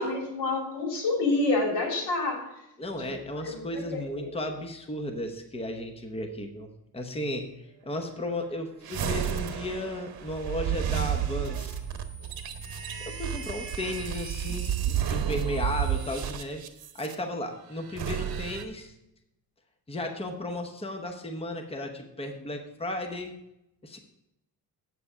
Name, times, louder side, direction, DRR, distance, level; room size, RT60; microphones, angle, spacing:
voice 1, 0.0-2.4 3.0-3.1 3.4-3.6 4.2-4.3, left 2 dB, 90° left, 0 dB, 3.3 m, -27 dB
voice 2, 2.8-7.5 7.8-11.8 13.0-16.6 17.0-18.9 19.9-23.3 23.8-24.0, left 1 dB, 15° left, 5 dB, 0.9 m, -34 dB
sound 1, 8.8-17.1 17.8-18.6, right 9 dB, 65° right, 1.0 m, -31 dB
8.4 x 6.8 x 5.0 m, 0.88 s
cardioid pair, 130°, 40 cm